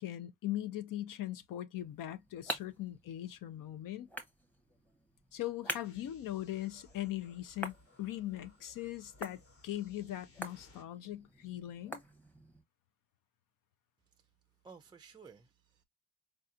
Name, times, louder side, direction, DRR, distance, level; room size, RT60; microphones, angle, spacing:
voice 1, 0.0-4.1 5.3-12.0, left 13 dB, 90° left, 0.7 m, -40 dB
sound 1, 1.8-12.6, equal, 5° left, 0.8 m, -47 dB
sound 2, 5.8-10.8, left 2 dB, 45° left, 1.3 m, -63 dB
voice 2, 14.6-15.8, right 5 dB, 15° right, 0.3 m, -55 dB
4.6 x 2.7 x 2.4 m
cardioid pair, 140°, 32 cm